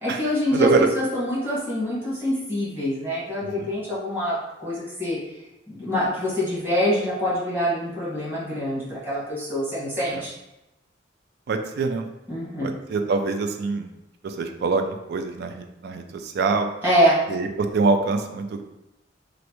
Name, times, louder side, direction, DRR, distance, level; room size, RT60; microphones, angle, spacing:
voice 1, 0.0-5.2 5.7-10.3 12.3-12.7 16.8-17.2, equal, 15° right, -9 dB, 1.4 m, -25 dB
voice 2, 0.5-0.9 3.6-3.7 10.1-10.2 11.5-12.1 12.6-13.9 14.2-14.8 15.1-15.5 15.8-16.7 17.3-18.6, right 4 dB, 60° right, 6 dB, 0.3 m, -24 dB
3.2 x 2.5 x 3.0 m, 0.94 s
head